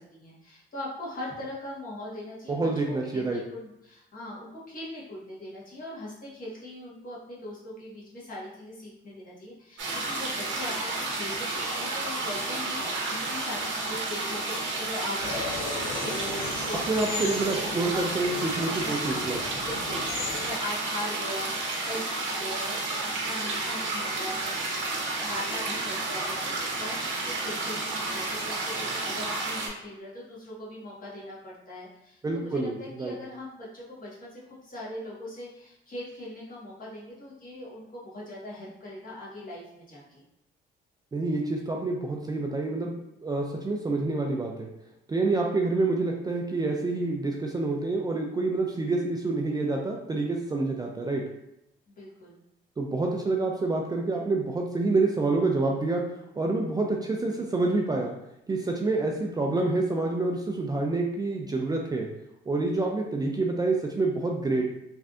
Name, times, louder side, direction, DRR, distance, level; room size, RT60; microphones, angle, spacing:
voice 1, 0.0-19.3 19.6-24.8 25.1-40.2 51.9-52.4, left 1 dB, 45° left, -6 dB, 1.3 m, -40 dB
voice 2, 2.5-3.4 16.9-19.4 32.2-33.1 41.1-44.7 45.1-51.2 52.8-56.0 56.4-58.1 58.5-62.1 62.5-64.6, right 3 dB, 20° right, 0 dB, 0.3 m, -27 dB
sound 1, 9.8-29.7, right 2 dB, 75° right, 0.8 m, -31 dB
sound 2, 15.2-20.5, left 3 dB, 80° left, 0.7 m, -37 dB
3.3 x 2.5 x 2.4 m, 0.83 s
cardioid pair, 90°, 20 cm